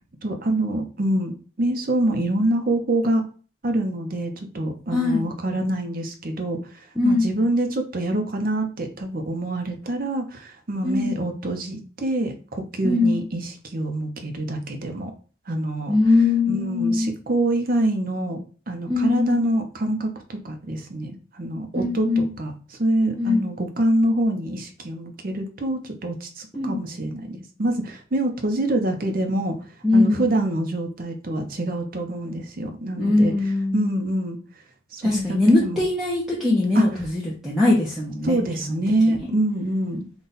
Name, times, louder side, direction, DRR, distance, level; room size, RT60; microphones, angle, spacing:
voice 1, 0.2-3.2 3.6-6.6 7.0-15.1 15.5-15.9 16.5-18.4 18.7-29.6 29.9-33.3 33.7-34.4 34.9-35.8 36.7-36.9 38.2-40.1, right 1 dB, 45° right, 5 dB, 0.7 m, -25 dB
voice 2, 4.9-5.3 7.0-7.3 10.8-11.1 12.8-13.2 15.9-17.1 18.9-19.4 21.7-22.3 23.2-23.4 26.5-26.8 29.8-30.6 33.0-34.0 35.0-38.4 38.7-39.2, left 2 dB, ahead, -5 dB, 0.6 m, -21 dB
3.9 x 2.3 x 3.9 m, 0.38 s
head